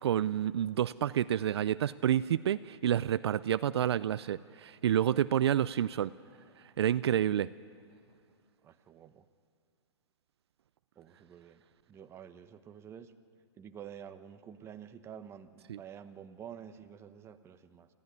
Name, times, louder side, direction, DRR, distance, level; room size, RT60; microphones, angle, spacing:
voice 1, 0.0-6.1 6.8-7.5 15.7-15.8, right 10 dB, 65° right, 16 dB, 0.5 m, -29 dB
voice 2, 5.5-6.0 8.6-9.2 11.0-11.6 11.9-13.1 13.6-17.9, right 8 dB, 15° right, 9 dB, 1.0 m, -49 dB
26.5 x 15.0 x 9.7 m, 2.3 s
hypercardioid pair, 135°, 15 cm